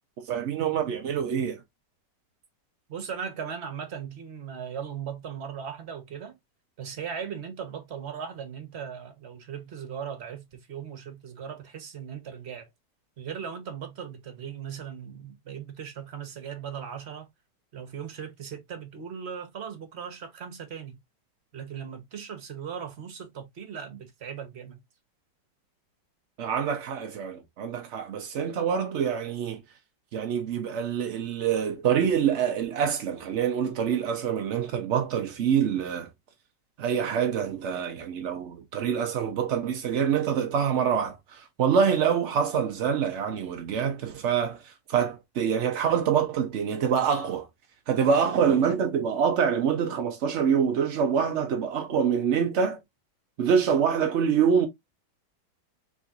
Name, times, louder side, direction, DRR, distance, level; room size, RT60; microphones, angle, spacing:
voice 1, 0.2-1.6 26.4-29.6 30.1-36.1 36.8-47.5 47.9-52.8 53.4-54.7, right 7 dB, 65° right, 0.7 m, -26 dB
voice 2, 2.9-6.4 6.8-12.7 13.2-17.3 17.7-21.0 21.5-24.8, right 7 dB, 45° right, 1.1 m, -38 dB
4.1 x 3.6 x 2.4 m
omnidirectional pair, 1.9 m